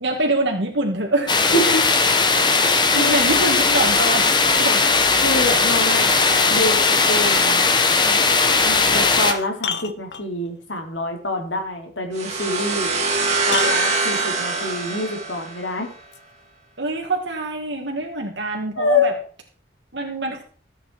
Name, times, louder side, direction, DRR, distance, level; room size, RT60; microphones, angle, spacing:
voice 1, 0.0-1.4 2.9-4.8 16.8-19.1 19.9-20.4, right 2 dB, 65° right, 0 dB, 2.1 m, -24 dB
sound 1, 1.3-9.3, left 4 dB, 25° left, 1.0 m, -18 dB
voice 2, 1.5-1.8 3.0-3.2 5.2-6.2 6.5-7.6 8.0-8.2 8.6-12.9 13.5-15.9 18.8-19.2, left 2 dB, 80° left, 4 dB, 2.8 m, -26 dB
sound 2, 9.1-10.6 12.6-12.7 13.4-14.8 16.1-16.2, left 7 dB, 60° left, 0.8 m, -32 dB
sound 3, 12.1-15.9, right 3 dB, 35° right, 2.9 m, -23 dB
14.5 x 8.7 x 4.6 m, 0.42 s
head